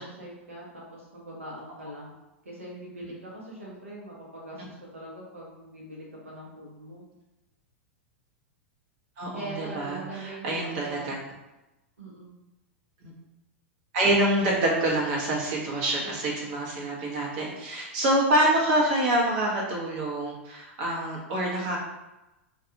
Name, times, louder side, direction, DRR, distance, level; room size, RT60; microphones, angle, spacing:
voice 1, 0.0-2.1 2.4-7.0 9.3-11.2 12.0-12.3, right 1 dB, 85° right, -5 dB, 1.0 m, -42 dB
voice 2, 9.2-11.1 13.0-13.1 13.9-21.8, right 1 dB, 55° right, -3 dB, 1.0 m, -26 dB
2.5 x 2.4 x 2.7 m, 1.0 s
hypercardioid pair, 100°, 7 cm